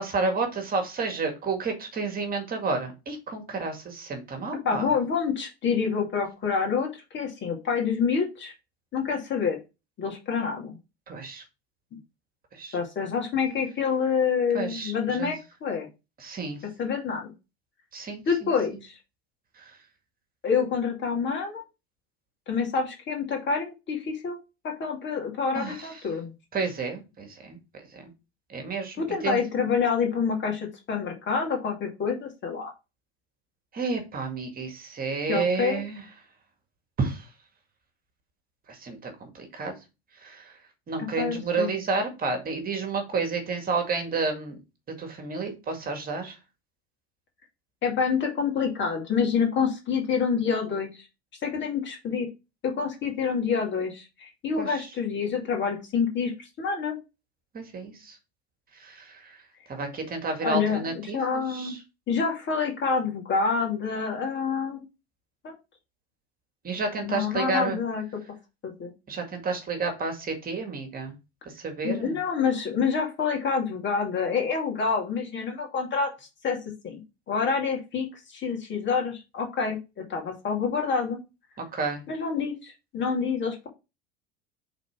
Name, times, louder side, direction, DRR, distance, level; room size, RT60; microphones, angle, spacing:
voice 1, 0.0-4.9 11.1-11.4 12.5-12.8 14.5-15.3 16.2-16.6 17.9-18.5 19.6-19.7 25.6-26.0 26.5-28.1 28.5-29.4 33.7-36.0 37.0-37.3 38.7-39.8 40.2-40.5 40.9-44.6 45.0-46.4 54.6-54.9 57.5-58.2 58.8-59.4 59.7-61.8 66.6-67.8 69.1-71.1 71.5-72.2 81.7-82.0, right 4 dB, 30° right, 5 dB, 1.9 m, -31 dB
voice 2, 4.6-8.5 8.9-9.6 10.0-10.8 12.7-15.9 16.8-17.3 18.3-19.0 20.4-21.6 22.5-24.4 24.6-26.3 29.0-32.7 35.3-35.8 41.0-41.7 47.8-51.1 51.4-52.3 52.6-57.0 60.4-61.7 62.1-64.9 65.4-65.5 67.0-68.0 68.6-68.9 71.8-76.1 76.4-76.6 76.8-77.0 77.3-81.2 82.1-83.7, left 5 dB, 40° left, 2 dB, 2.3 m, -27 dB
5.2 x 4.1 x 5.7 m, 0.27 s
hypercardioid pair, 90°, 30 cm